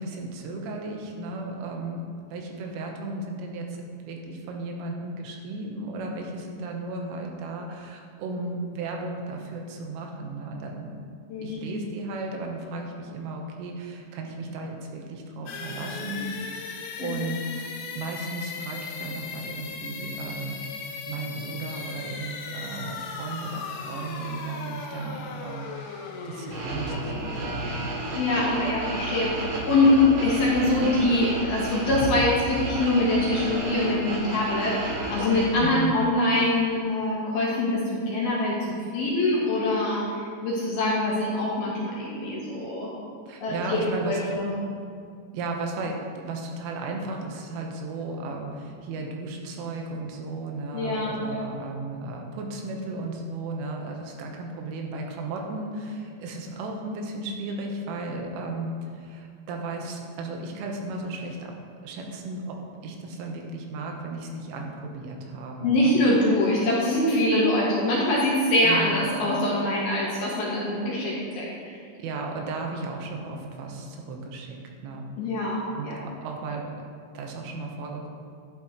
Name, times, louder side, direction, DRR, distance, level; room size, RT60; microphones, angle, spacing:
voice 1, 0.0-11.0 11.4-17.4 18.0-20.6 20.9-27.9 35.6-35.9 43.3-44.4 45.3-61.5 61.8-65.9 68.6-69.0 70.5-70.6 72.0-74.6 74.8-75.1 75.7-76.7 77.1-78.1, right 2 dB, 85° right, 1 dB, 3.6 m, -35 dB
sound 1, 15.5-29.2, left 4 dB, 80° left, 3.6 m, -38 dB
sound 2, 26.5-35.5, right 2 dB, 55° right, 2.6 m, -32 dB
voice 2, 28.2-29.3 29.7-38.5 38.9-42.9 43.4-44.5 50.7-51.5 65.6-71.8 75.2-76.0, left 1 dB, 65° left, -5 dB, 2.7 m, -24 dB
11.5 x 11.5 x 3.1 m, 2.2 s
omnidirectional pair, 5.8 m